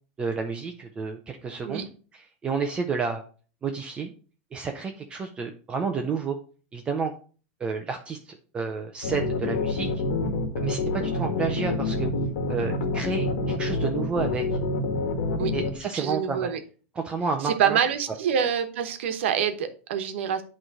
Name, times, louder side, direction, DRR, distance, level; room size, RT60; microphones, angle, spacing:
voice 1, 0.2-1.9 2.1-3.2 3.6-4.1 4.5-6.4 6.7-7.1 7.6-9.9 10.6-12.1 12.5-14.4 15.5-16.5 17.0-17.8, right 5 dB, 15° right, 4 dB, 0.6 m, -30 dB
sound 1, 9.0-15.7, left 2 dB, 85° left, 1.4 m, -27 dB
voice 2, 15.9-16.6 17.4-20.4, right 8 dB, 80° right, 8 dB, 1.0 m, -26 dB
8.7 x 3.2 x 4.8 m, 0.38 s
supercardioid pair, 160°, 6 cm